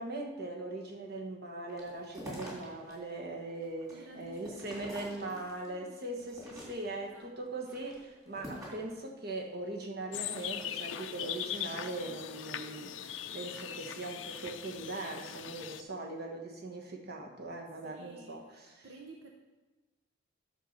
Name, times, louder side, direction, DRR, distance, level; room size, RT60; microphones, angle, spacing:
voice 1, 0.0-18.8, right 2 dB, 55° right, 2 dB, 1.4 m, -40 dB
sound 1, 1.7-2.9 3.4-5.7 6.2-7.0 7.6-8.9, equal, 20° right, 3.4 m, -46 dB
voice 2, 3.9-6.0 7.0-7.3 17.8-19.3, right 2 dB, 75° right, 2 dB, 0.9 m, -53 dB
sound 2, 10.1-15.8, left 9 dB, 75° left, 0.5 m, -40 dB
10.5 x 5.8 x 6.6 m, 1.2 s
head